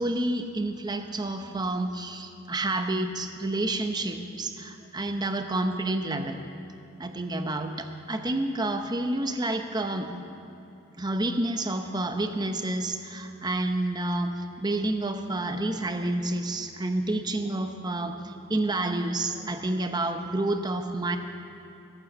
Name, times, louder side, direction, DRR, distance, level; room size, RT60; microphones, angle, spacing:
voice 1, 0.0-6.4 7.0-10.1 11.0-21.2, right 2 dB, 20° right, 6 dB, 0.8 m, -29 dB
14.5 x 9.0 x 7.3 m, 2.8 s
head